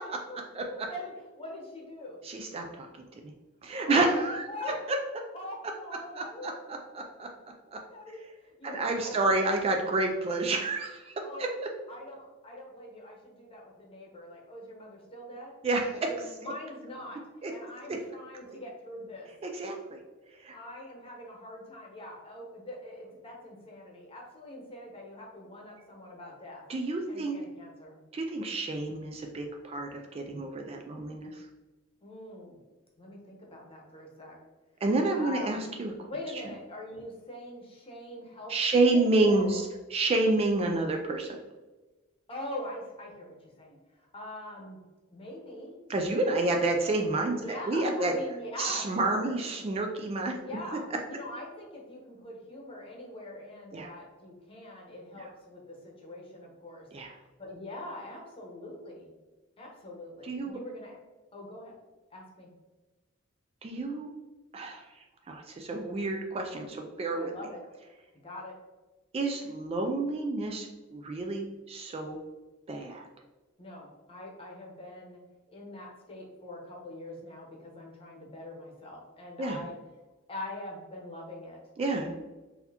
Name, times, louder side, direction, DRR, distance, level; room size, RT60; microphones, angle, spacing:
voice 1, 0.0-2.2 3.8-5.1 5.3-6.6 7.9-9.2 11.2-11.5 11.9-15.5 16.0-17.2 17.5-19.3 20.5-26.6 27.1-28.0 32.0-32.6 33.0-34.4 35.2-35.6 36.1-39.6 42.3-43.8 44.1-44.8 45.1-45.8 46.4-46.6 47.3-49.4 50.4-56.9 57.4-59.1 59.6-61.0 61.3-61.7 62.1-62.5 67.1-67.6 68.2-68.5 73.6-75.2 75.5-79.7 80.3-81.6, left 1 dB, 30° left, -2 dB, 0.9 m, -43 dB
voice 2, 0.5-0.9 2.2-2.9 3.2-3.3 3.6-5.0 6.2-7.3 7.7-7.8 8.6-11.5 15.6-15.9 17.4-17.5 17.9-18.0 18.5-18.6 19.4-20.0 20.4-20.5 26.7-27.4 28.1-31.4 34.8-35.9 38.5-39.6 39.9-41.4 45.9-48.1 48.6-50.3 53.7-53.9 56.9-57.1 60.2-60.6 63.6-64.1 64.5-64.8 65.3-67.3 69.1-72.2 72.7-73.1 79.4-79.6 81.8-82.1, right 2 dB, 30° right, 3 dB, 0.3 m, -29 dB
3.9 x 2.7 x 2.8 m, 1.2 s
head